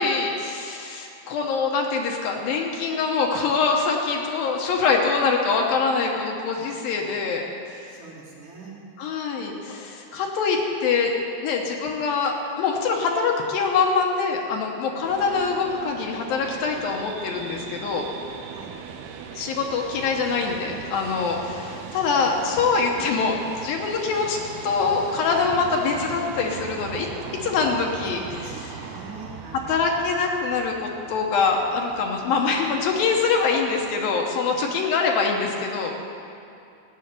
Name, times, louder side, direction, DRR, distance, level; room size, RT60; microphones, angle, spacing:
voice 1, 0.0-7.4 9.0-11.1 11.4-18.1 19.3-24.4 24.6-28.8 29.5-35.9, left 4 dB, 75° left, 1 dB, 2.6 m, -24 dB
voice 2, 7.9-8.8 18.5-18.8 28.0-29.9, right 4 dB, 60° right, -3 dB, 2.3 m, -42 dB
sound 1, 15.0-34.0, right 6 dB, 85° right, 2.8 m, -39 dB
14.5 x 6.4 x 9.3 m, 2.6 s
omnidirectional pair, 4.6 m